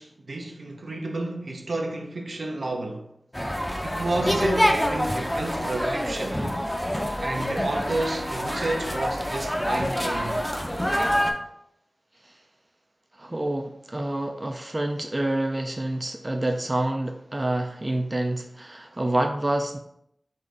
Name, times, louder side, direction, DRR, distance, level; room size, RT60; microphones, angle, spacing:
voice 1, 0.0-3.0 3.8-6.4 7.2-10.5, right 2 dB, 75° right, 0.6 m, -31 dB
sound 1, 3.3-11.3, equal, 10° left, 0.6 m, -26 dB
voice 2, 13.2-19.8, right 1 dB, 30° right, 0.4 m, -27 dB
3.9 x 3.6 x 3.3 m
wide cardioid pair, 55°, 0 cm